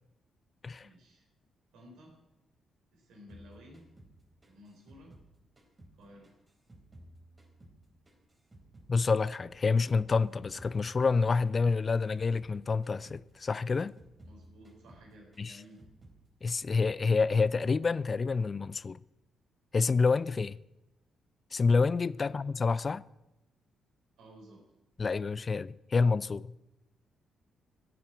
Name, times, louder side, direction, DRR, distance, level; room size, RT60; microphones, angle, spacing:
voice 1, 0.8-1.3 1.7-2.1 2.9-3.8 4.5-5.1 6.0-6.3 14.2-15.8 22.2-22.4 24.2-24.6, equal, 70° right, 4.0 m, -54 dB
sound 1, 3.3-6.0 6.2-8.9 9.2-12.6 12.8-13.2 13.5-16.2 16.5-16.9 17.1-17.8, right 1 dB, 30° right, 3.9 m, -56 dB
voice 2, 8.9-13.9 15.4-15.6 16.4-19.0 19.7-20.6 21.5-23.0 25.0-26.5, left 4 dB, 40° left, 0.4 m, -28 dB
14.5 x 8.4 x 7.7 m
hypercardioid pair, 40°, 0 cm